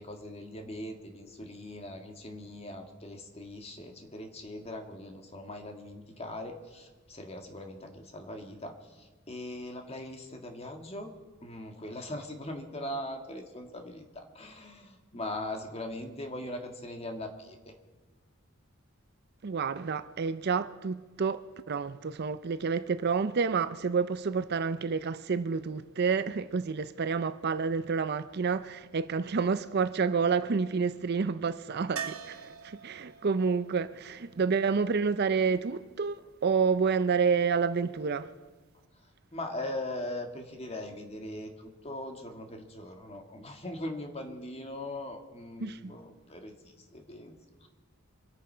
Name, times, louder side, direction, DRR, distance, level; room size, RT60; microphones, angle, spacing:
voice 1, 0.0-11.1 11.4-17.7 39.3-47.7, left 1 dB, 30° left, 1.8 m, -40 dB
voice 2, 19.4-38.3 45.6-45.9, right 5 dB, 50° right, 0.5 m, -29 dB
sound 1, 32.0-35.8 38.5-38.6 38.8-38.9, right 7 dB, 80° right, 1.0 m, -44 dB
25.5 x 8.8 x 5.6 m
head